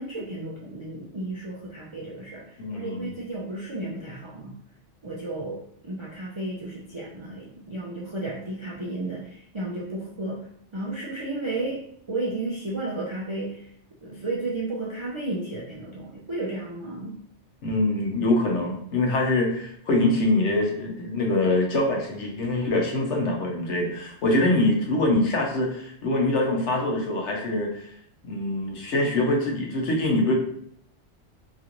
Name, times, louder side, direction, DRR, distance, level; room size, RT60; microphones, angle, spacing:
voice 1, 0.0-4.6 5.0-10.5 10.7-11.8 12.1-13.7 14.0-17.2, right 2 dB, 50° right, -5 dB, 0.3 m, -33 dB
voice 2, 2.6-3.1 17.6-27.9 28.2-30.4, left 2 dB, 85° left, 1 dB, 1.1 m, -24 dB
3.0 x 2.5 x 2.9 m, 0.65 s
omnidirectional pair, 1.2 m